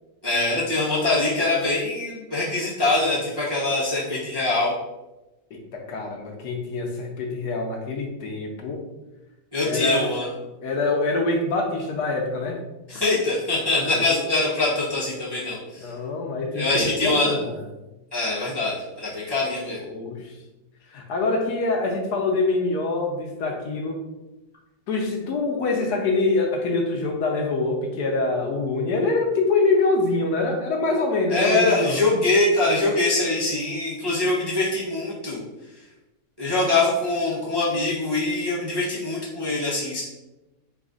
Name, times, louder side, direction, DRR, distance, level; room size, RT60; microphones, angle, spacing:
voice 1, 0.2-4.7 9.5-10.3 12.9-15.9 16.5-17.3 18.1-19.8 31.3-35.4 36.4-40.0, left 2 dB, 25° right, -8 dB, 0.6 m, -23 dB
voice 2, 5.5-8.8 9.6-10.1 10.6-12.6 13.8-14.2 15.8-17.6 19.7-20.3 20.9-24.0 24.9-31.9, left 3 dB, 75° left, 2 dB, 1.2 m, -25 dB
4.1 x 2.5 x 3.7 m, 1.0 s
omnidirectional pair, 1.8 m